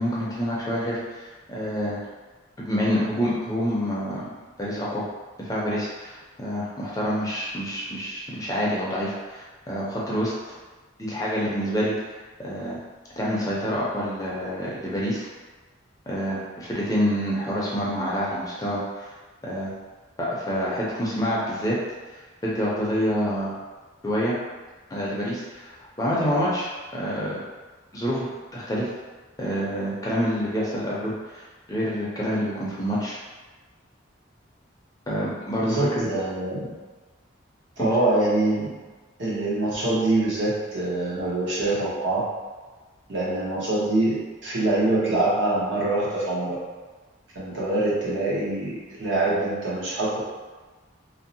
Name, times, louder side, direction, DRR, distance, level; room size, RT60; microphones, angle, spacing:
voice 1, 0.0-2.0 2.6-4.2 4.6-5.0 5.4-10.3 11.0-11.9 12.4-12.8 13.2-15.3 16.1-19.1 19.4-19.7 20.2-21.8 22.4-23.5 24.0-24.3 24.9-27.4 27.9-28.9 29.4-33.2 35.1-36.0 37.8-37.9, equal, 20° left, -6 dB, 0.4 m, -27 dB
voice 2, 35.6-36.7 37.8-38.7 39.2-42.2 43.1-46.6 47.3-50.2, right 2 dB, 65° right, -7 dB, 0.9 m, -24 dB
2.6 x 2.0 x 2.6 m, 1.3 s
head